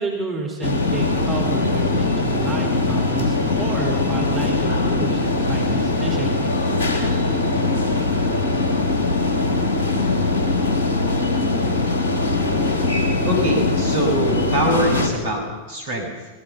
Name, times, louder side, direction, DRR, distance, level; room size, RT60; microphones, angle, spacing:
voice 1, 0.0-6.4, right 4 dB, 25° right, 0 dB, 5.0 m, -30 dB
sound 1, 0.6-15.1, left 2 dB, 60° left, 3.4 m, -21 dB
voice 2, 13.2-16.3, right 1 dB, 60° right, 2 dB, 6.8 m, -23 dB
26.0 x 21.5 x 5.7 m, 1.3 s
figure-of-eight pair, 90°, 0 cm